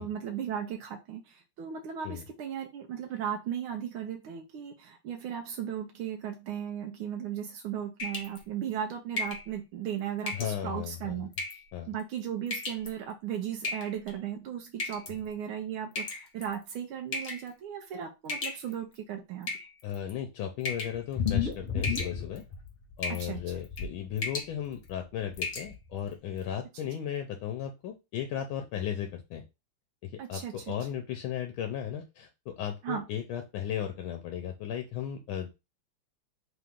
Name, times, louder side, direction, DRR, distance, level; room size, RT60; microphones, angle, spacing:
voice 1, 0.0-11.3 11.9-19.5 23.1-23.4 30.2-30.7 32.8-33.0, right 9 dB, 80° right, 5 dB, 1.4 m, -36 dB
sound 1, 8.0-8.4 9.2-9.5 10.3-10.5 11.3-11.7 12.5-12.9 13.6-14.1 14.8-15.1 16.0-16.5 17.1-17.5 18.3-18.9 19.4-20.1 20.6-21.0 21.3-21.5 21.8-22.4 23.0-23.3 23.6-23.9 24.2-24.5 24.9-25.0 25.4-25.7, left 3 dB, 50° left, 1.4 m, -35 dB
voice 2, 10.3-11.2 11.7-11.9 19.8-22.4 23.0-29.4 30.0-35.6, left 9 dB, 80° left, 5 dB, 1.4 m, -36 dB
sound 2, 21.2-22.9 23.2-23.9 24.9-25.0 25.3-25.4 25.7-25.8, left 7 dB, 25° left, 1.2 m, -31 dB
3.8 x 2.9 x 3.6 m, 0.26 s
omnidirectional pair, 2.3 m